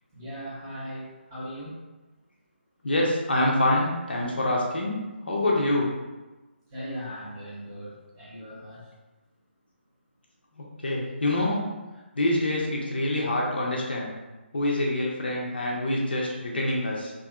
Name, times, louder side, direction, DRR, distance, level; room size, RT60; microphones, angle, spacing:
voice 1, 0.1-1.7 6.7-8.9, equal, 20° right, -9 dB, 0.7 m, -38 dB
voice 2, 2.8-5.9 10.6-11.6 12.2-14.1 14.5-17.1, left 1 dB, 55° left, -3 dB, 0.5 m, -26 dB
2.6 x 2.4 x 2.2 m, 1.2 s
figure-of-eight pair, 150°, 6 cm